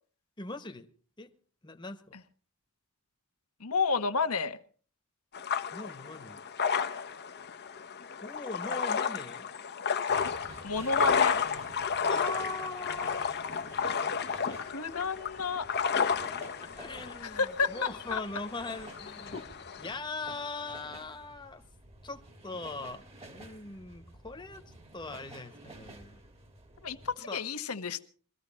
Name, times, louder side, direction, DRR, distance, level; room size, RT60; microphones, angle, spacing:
voice 1, 0.4-0.9 1.2-1.3 1.6-2.1 5.7-6.4 8.2-9.5 12.0-13.5 13.9-14.6 16.2-21.6 22.0-26.2 27.2-27.4, left 3 dB, 20° left, 1.3 m, -41 dB
voice 2, 3.6-4.6 10.2-11.4 14.6-15.7 17.3-18.2 26.8-28.0, left 4 dB, 90° left, 1.3 m, -31 dB
sound 1, 5.3-20.0, left 6 dB, 50° left, 0.9 m, -32 dB
sound 2, 10.1-27.2, right 2 dB, 30° right, 1.9 m, -51 dB
22.5 x 14.5 x 4.3 m
head